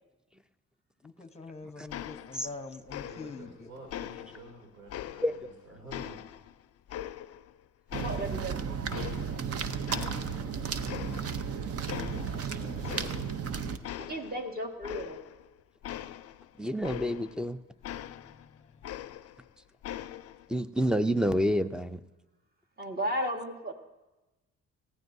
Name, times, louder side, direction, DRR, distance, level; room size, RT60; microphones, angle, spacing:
voice 1, 1.0-3.7 11.9-13.1 17.9-18.9, left 4 dB, 20° left, 9 dB, 0.9 m, -46 dB
sound 1, 1.9-2.6 2.9-3.5 3.9-5.5 5.9-7.6 7.9-9.5 9.9-10.5 10.9-11.5 11.9-12.4 12.8-13.5 13.8-17.4 17.8-19.5 19.8-20.5, left 11 dB, 55° left, 0.5 m, -41 dB
voice 2, 3.0-6.2, right 2 dB, 80° right, -1 dB, 3.0 m, -49 dB
sound 2, 7.9-13.8, right 6 dB, 50° right, 0.8 m, -34 dB
voice 3, 8.0-8.6 14.0-15.2 22.8-23.7, equal, 30° right, 4 dB, 1.7 m, -34 dB
voice 4, 16.6-17.6 20.5-22.0, equal, 5° right, 12 dB, 0.4 m, -28 dB
18.5 x 14.5 x 2.7 m, 1.1 s
cardioid pair, 90°, 30 cm